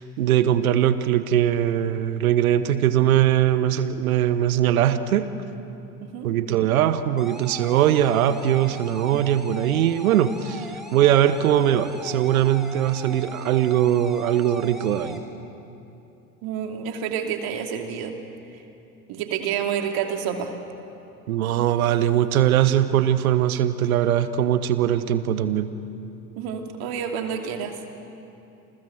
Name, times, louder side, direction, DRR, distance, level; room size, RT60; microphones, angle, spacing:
voice 1, 0.0-5.3 6.2-10.7 10.9-15.2 21.3-25.7, right 11 dB, 75° right, 13 dB, 1.2 m, -21 dB
sound 1, 7.2-15.2, equal, ahead, 3.8 m, -40 dB
voice 2, 16.4-18.1 19.1-20.5 26.4-27.8, right 8 dB, 60° right, 4 dB, 2.8 m, -28 dB
28.5 x 21.5 x 7.9 m, 2.8 s
figure-of-eight pair, 60°, 43 cm